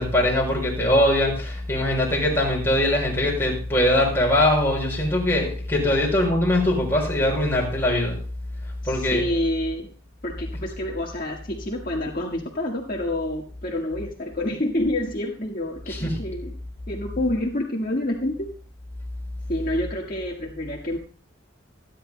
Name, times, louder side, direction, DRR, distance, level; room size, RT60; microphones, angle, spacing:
voice 1, 0.0-8.2 8.8-9.2 15.9-16.1, left 1 dB, 10° left, -3 dB, 5.5 m, -21 dB
voice 2, 8.8-9.9 10.2-16.5 16.9-18.5 19.5-21.0, left 1 dB, 45° left, -1 dB, 1.6 m, -28 dB
26.5 x 10.5 x 2.2 m, 0.40 s
head